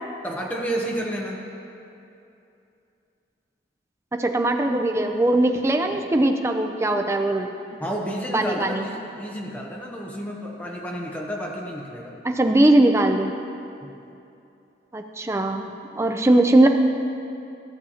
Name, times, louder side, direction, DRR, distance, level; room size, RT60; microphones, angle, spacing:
voice 1, 0.2-1.4 7.8-12.1 13.8-13.9, equal, 10° left, -1 dB, 0.7 m, -31 dB
voice 2, 4.2-7.5 8.3-8.9 12.2-13.3 14.9-16.7, right 1 dB, 15° right, 4 dB, 0.4 m, -20 dB
14.0 x 6.9 x 2.8 m, 2.7 s
head